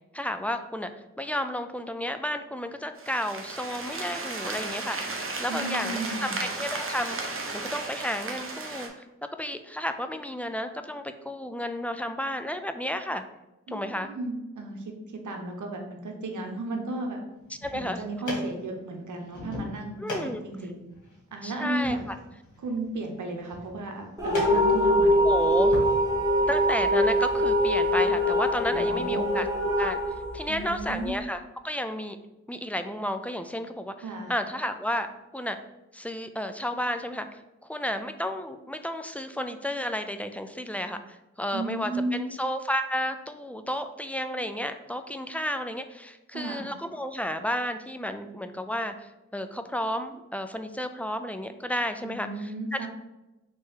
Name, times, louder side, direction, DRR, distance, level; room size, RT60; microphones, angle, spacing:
voice 1, 0.1-0.9 1.2-8.9 9.4-13.2 13.7-14.1 17.6-18.0 20.0-20.4 21.4-22.2 25.2-25.7 26.5-29.5 29.8-30.0 30.3-31.4 31.6-32.2 32.5-33.9 34.3-35.6 35.9-37.3 37.7-52.3 52.7-52.9, equal, 5° left, 8 dB, 0.3 m, -32 dB
sound 1, 3.0-8.9, right 3 dB, 45° right, 0.8 m, -34 dB
voice 2, 5.5-6.4 13.7-17.2 17.7-20.0 20.4-20.8 21.3-22.0 22.6-25.2 28.7-29.4 30.5-31.1 34.0-34.3 41.5-42.3 46.3-46.7 52.0-52.9, right 2 dB, 85° right, 3 dB, 0.9 m, -34 dB
sound 2, 17.4-25.9, left 1 dB, 90° left, 1.5 m, -41 dB
sound 3, 24.2-31.1, equal, 10° right, 1.4 m, -23 dB
3.4 x 3.1 x 4.7 m, 0.98 s
cardioid pair, 60°, 30 cm